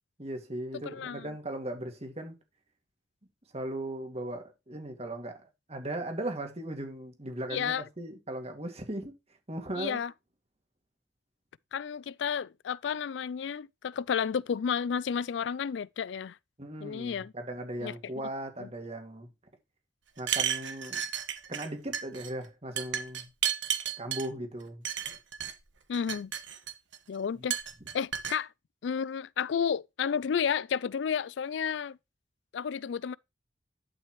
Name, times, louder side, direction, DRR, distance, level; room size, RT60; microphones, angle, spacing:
voice 1, 0.2-2.4 3.5-5.4 5.7-9.1 9.5-10.0 16.6-19.3 20.2-21.0 21.5-23.3 24.0-24.8 27.4-27.5, right 1 dB, 35° right, 2.3 m, -38 dB
voice 2, 0.8-1.3 7.5-7.9 9.8-10.1 11.7-16.4 16.8-17.3 17.8-18.0 18.6-18.7 25.9-26.3 27.1-27.6 27.9-28.5 28.8-32.0 32.5-33.2, left 7 dB, 70° left, 0.4 m, -31 dB
sound 1, 20.2-21.7 21.9-22.3 22.8-24.3 24.8-25.5 25.9-27.0 27.5-28.4, right 9 dB, 85° right, 1.5 m, -32 dB
11.5 x 5.8 x 3.1 m
head